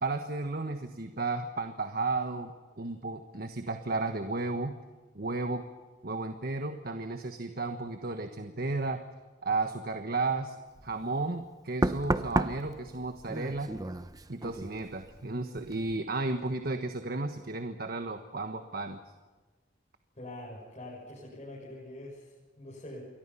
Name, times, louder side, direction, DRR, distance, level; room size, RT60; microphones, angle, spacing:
voice 1, 0.0-4.8 5.1-5.6 6.0-9.0 9.4-10.6 10.8-13.7 14.3-19.0, right 3 dB, 55° right, 6 dB, 1.4 m, -33 dB
Knock, 10.8-11.0 11.8-15.3 15.6-15.9, right 1 dB, 20° right, 0.9 m, -33 dB
voice 2, 20.1-23.1, left 1 dB, 35° left, -5 dB, 6.5 m, -44 dB
28.5 x 23.0 x 5.7 m, 1.3 s
head